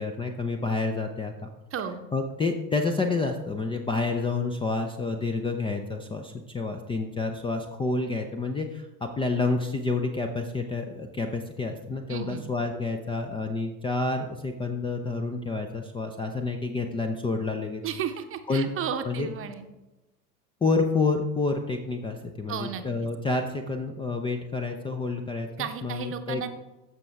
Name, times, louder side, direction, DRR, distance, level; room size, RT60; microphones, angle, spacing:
voice 1, 0.0-1.5 2.1-17.8 18.5-18.7 19.1-19.3 20.6-26.4, left 3 dB, 10° left, 5 dB, 0.5 m, -29 dB
voice 2, 1.7-2.0 12.1-12.5 17.8-19.7 22.5-23.1 25.6-26.5, right 8 dB, 30° right, 7 dB, 0.9 m, -33 dB
14.5 x 6.1 x 3.4 m, 1.0 s
figure-of-eight pair, 75°, 46 cm